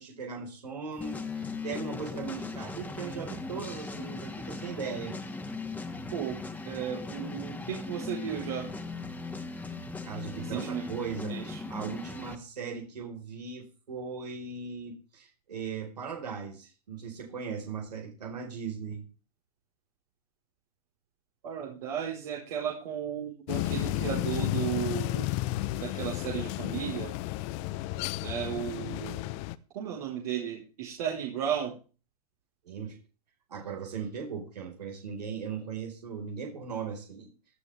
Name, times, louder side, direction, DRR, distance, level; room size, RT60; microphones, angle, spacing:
voice 1, 0.0-5.3 10.0-19.1 32.6-33.0 33.5-37.3, right 6 dB, 85° right, 2 dB, 4.6 m, -38 dB
sound 1, 1.0-12.4, left 3 dB, 10° left, 2.0 m, -38 dB
voice 2, 6.6-8.7 10.4-10.9 11.3-11.6 21.4-25.4 25.8-27.1 28.2-29.4 29.7-31.8, right 9 dB, 65° right, -2 dB, 4.5 m, -34 dB
sound 2, 23.5-29.6, left 15 dB, 50° left, 1.0 m, -32 dB
18.5 x 11.5 x 3.5 m, 0.35 s
hypercardioid pair, 110°, 20 cm